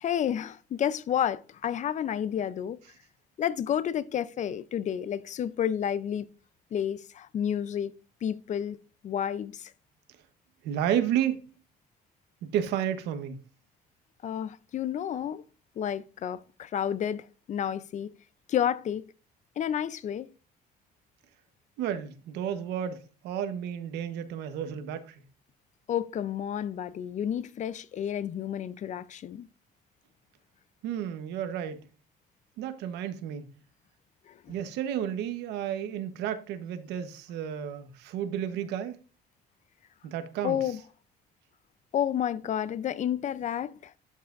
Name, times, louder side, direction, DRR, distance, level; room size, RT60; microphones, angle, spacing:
voice 1, 0.0-2.8 3.4-6.3 6.7-7.9 8.2-8.8 9.0-9.7 14.2-15.4 15.8-18.1 18.5-19.0 19.6-20.3 25.9-29.5 34.5-34.6 40.4-40.8 41.9-43.7, left 9 dB, 45° left, 0.5 m, -30 dB
voice 2, 10.6-11.4 12.4-13.3 21.8-25.1 30.8-31.8 32.6-33.5 34.5-39.0 40.0-40.7, right 9 dB, 85° right, 1.1 m, -32 dB
12.0 x 5.7 x 2.5 m
cardioid pair, 110°, 17 cm